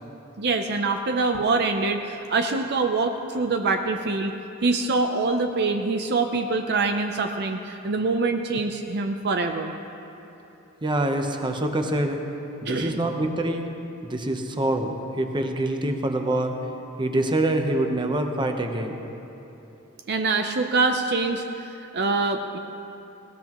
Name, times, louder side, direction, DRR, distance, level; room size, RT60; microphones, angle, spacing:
voice 1, 0.4-4.3 4.6-9.7 12.7-13.0 20.1-22.6, right 3 dB, 50° right, 5 dB, 0.6 m, -25 dB
voice 2, 10.8-12.2 12.6-13.6 14.0-16.6 17.0-19.0, right 1 dB, 20° right, 4 dB, 0.9 m, -25 dB
19.0 x 17.5 x 3.0 m, 3.0 s
head